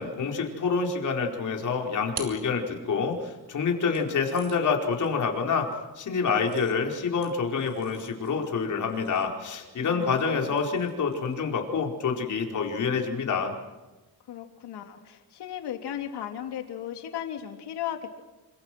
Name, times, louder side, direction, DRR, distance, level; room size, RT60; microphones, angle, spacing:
voice 1, 0.0-5.7 6.0-13.5, left 5 dB, 50° left, 1 dB, 4.8 m, -27 dB
sound 1, 2.1-3.2 3.9-11.5, right 7 dB, 90° right, 4.8 m, -48 dB
voice 2, 9.8-10.5 14.3-18.2, left 10 dB, 85° left, 5 dB, 3.4 m, -36 dB
28.0 x 26.0 x 6.3 m, 1.2 s
cardioid pair, 150°, 39 cm